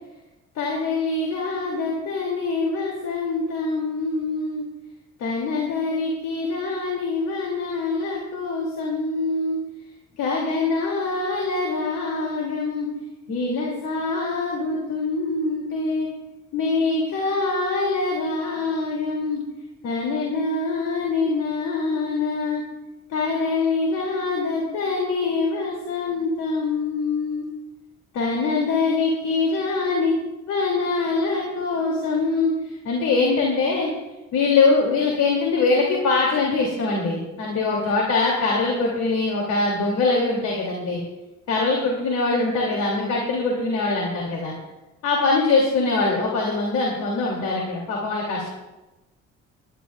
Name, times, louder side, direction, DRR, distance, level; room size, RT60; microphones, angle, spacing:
voice 1, 0.5-4.6 5.2-9.6 10.2-12.9 13.3-16.1 16.5-19.4 19.8-22.6 23.1-27.5 28.1-30.1 30.5-33.9 34.3-41.0 41.5-44.5 45.0-48.5, left 3 dB, 90° left, -2 dB, 2.6 m, -24 dB
23.5 x 11.0 x 2.3 m, 1.0 s
cardioid pair, 90°, 30 cm